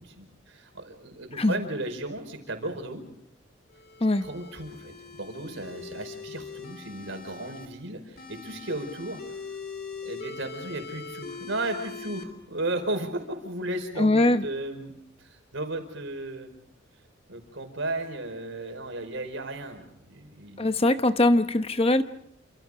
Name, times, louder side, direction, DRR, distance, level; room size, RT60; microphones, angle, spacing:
voice 1, 0.0-3.1 4.2-9.2 10.0-14.9 15.2-16.5 17.3-20.8, right 2 dB, 70° right, 6 dB, 5.0 m, -35 dB
sound 1, 3.7-7.7 8.2-12.2, left 5 dB, 50° left, 3.4 m, -42 dB
voice 2, 14.0-14.4 20.6-22.0, left 2 dB, 30° left, 10 dB, 0.9 m, -21 dB
29.0 x 27.0 x 5.0 m, 0.73 s
head